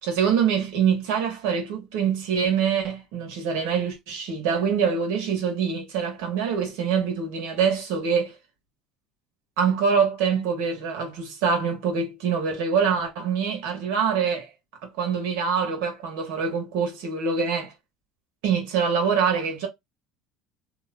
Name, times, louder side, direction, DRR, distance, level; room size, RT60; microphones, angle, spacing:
voice 1, 0.0-8.3 9.6-14.5 14.8-17.7 18.4-19.7, right 6 dB, 80° right, 1.3 m, -25 dB
3.0 x 2.1 x 3.6 m
cardioid pair, 135°, 0 cm